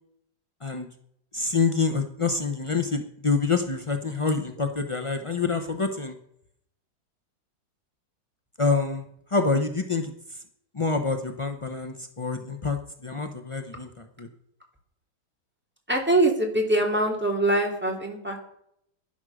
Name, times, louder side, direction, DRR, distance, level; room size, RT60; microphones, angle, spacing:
voice 1, 1.3-6.1 8.6-9.0 9.3-10.1 10.7-14.3, left 4 dB, 45° left, 6 dB, 0.4 m, -26 dB
voice 2, 15.9-18.4, right 1 dB, 5° right, 1 dB, 2.6 m, -23 dB
11.5 x 11.0 x 6.4 m, 0.71 s
omnidirectional pair, 2.1 m